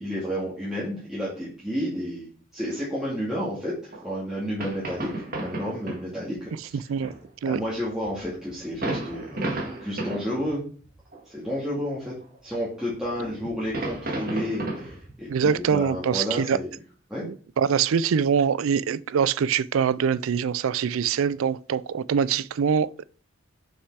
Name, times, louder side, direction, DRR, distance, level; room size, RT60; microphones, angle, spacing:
voice 1, 0.0-2.3 2.5-6.8 7.4-10.6 11.3-12.1 12.4-16.7 17.1-17.2, equal, 5° right, 2.1 m, -31 dB
sound 1, 3.9-4.1 4.3-4.4 4.6-6.1 6.4-6.5 7.0-10.5 10.8-11.2 11.9-12.6 12.9-16.1, right 2 dB, 45° right, 1.9 m, -34 dB
voice 2, 15.3-16.6 17.2-23.0, right 7 dB, 75° right, 0.4 m, -24 dB
6.6 x 5.6 x 4.7 m
head